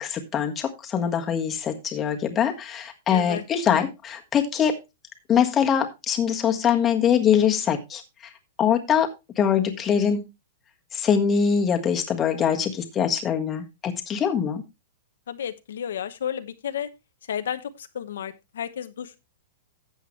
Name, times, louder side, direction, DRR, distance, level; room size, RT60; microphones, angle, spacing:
voice 1, 0.0-4.7 5.3-8.0 8.6-9.1 9.4-10.2 10.9-14.6, left 8 dB, 20° left, 3 dB, 1.5 m, -23 dB
voice 2, 3.1-3.4 15.3-16.9 17.3-19.2, left 9 dB, 85° left, 9 dB, 0.9 m, -32 dB
12.5 x 8.1 x 3.1 m, 0.24 s
hypercardioid pair, 160°, 0 cm